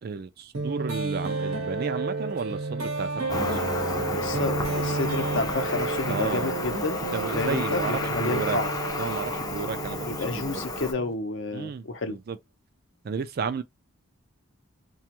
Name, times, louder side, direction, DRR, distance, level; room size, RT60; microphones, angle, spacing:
voice 1, 0.0-3.7 6.1-6.6 7.1-8.6 9.0-10.6 11.5-12.4 13.0-13.6, right 5 dB, 45° right, 0.3 m, -33 dB
sound 1, 0.5-11.1, right 3 dB, 80° right, 0.9 m, -31 dB
Cricket, 3.3-10.9, left 3 dB, 15° left, 0.5 m, -32 dB
voice 2, 4.1-7.0 7.4-8.7 10.0-12.2, left 3 dB, 55° left, 0.6 m, -30 dB
2.9 x 2.3 x 2.9 m
head